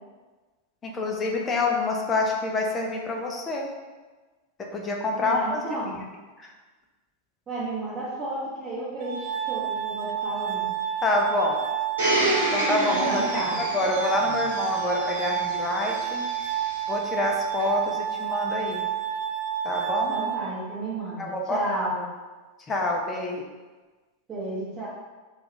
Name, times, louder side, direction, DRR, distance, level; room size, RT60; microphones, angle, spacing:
voice 1, 0.8-3.7 4.6-5.8 6.4-6.5 11.0-11.6 12.5-16.2 16.9-18.9 19.6-20.2 21.2-21.6 22.7-23.5, left 2 dB, 20° left, 0 dB, 0.4 m, -27 dB
voice 2, 5.2-6.0 7.5-10.7 12.9-13.6 20.1-22.0 24.3-24.9, right 2 dB, 20° right, -12 dB, 0.8 m, -32 dB
Glass, 9.0-21.0, right 9 dB, 45° right, 0.3 m, -30 dB
Domestic sounds home sounds, 12.0-16.8 17.6-17.7, right 1 dB, 70° right, 0.9 m, -29 dB
2.3 x 2.3 x 2.9 m, 1.3 s
figure-of-eight pair, 90°, 0 cm